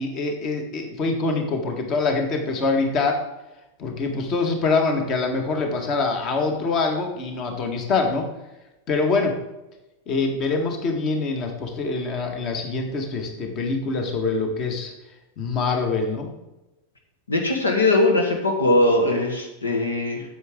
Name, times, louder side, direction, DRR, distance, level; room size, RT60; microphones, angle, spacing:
voice 1, 0.0-3.2 3.8-8.3 8.9-9.3 10.1-14.9 15.4-16.3, left 3 dB, 35° left, 4 dB, 1.7 m, -24 dB
voice 2, 17.3-20.2, left 2 dB, 75° left, 3 dB, 1.4 m, -20 dB
9.4 x 7.9 x 3.7 m, 0.97 s
figure-of-eight pair, 90°, 0 cm